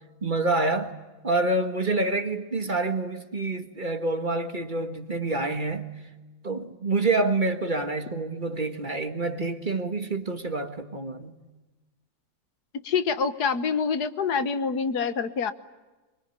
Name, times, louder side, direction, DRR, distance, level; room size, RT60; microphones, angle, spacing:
voice 1, 0.2-1.0 1.2-5.9 6.4-11.4, right 2 dB, 30° right, 1.7 m, -27 dB
voice 2, 12.8-15.5, left 5 dB, 85° left, 1.8 m, -26 dB
24.5 x 24.0 x 9.8 m
omnidirectional pair, 1.7 m